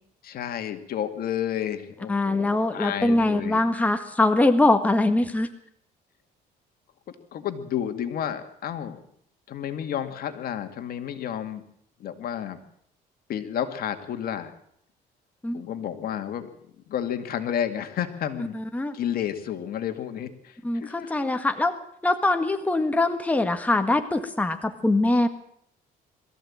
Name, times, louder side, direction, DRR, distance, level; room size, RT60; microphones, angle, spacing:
voice 1, 0.2-3.6 7.1-9.0 9.5-11.6 12.0-12.6 13.3-14.5 15.5-16.5 16.9-18.6 18.9-21.3, left 9 dB, 60° left, 8 dB, 2.3 m, -31 dB
voice 2, 2.1-5.5 15.4-15.6 18.5-19.0 20.6-21.7 22.0-25.3, left 2 dB, 10° left, 6 dB, 1.7 m, -23 dB
22.0 x 14.5 x 8.8 m, 0.70 s
cardioid pair, 110°, 17 cm